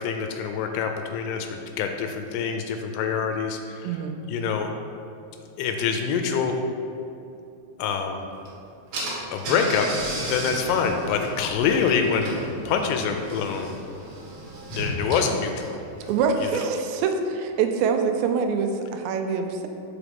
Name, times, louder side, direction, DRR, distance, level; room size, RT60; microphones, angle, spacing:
voice 1, 0.0-4.0 4.3-4.7 5.6-6.6 7.8-8.3 9.3-9.9 10.2-12.4 12.7-13.8 14.7-15.8, left 6 dB, 85° left, 5 dB, 2.6 m, -25 dB
voice 2, 3.8-4.2 16.1-19.7, right 5 dB, 85° right, 5 dB, 2.7 m, -25 dB
Car / Engine, 8.5-8.6 8.9-16.4, right 1 dB, 60° right, 2.5 m, -34 dB
6.1 x 4.7 x 5.2 m, 2.7 s
omnidirectional pair, 5.0 m